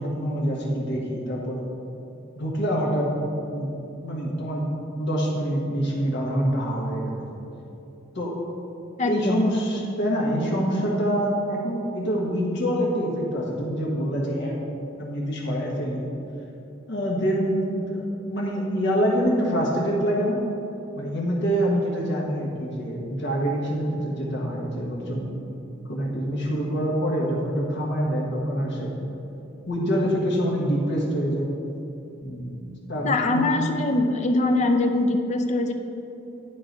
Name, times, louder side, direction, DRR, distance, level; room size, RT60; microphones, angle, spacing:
voice 1, 0.0-1.6 2.3-3.1 3.5-3.7 4.0-4.7 5.0-7.2 8.1-8.3 9.0-14.6 15.0-16.0 16.9-20.4 20.9-25.3 25.9-28.9 29.7-31.5 32.2-32.6 32.9-33.5, equal, 65° left, -3 dB, 1.4 m, -25 dB
voice 2, 9.0-9.5 33.0-35.7, left 2 dB, 35° left, 4 dB, 0.5 m, -23 dB
10.5 x 3.9 x 3.9 m, 2.9 s
head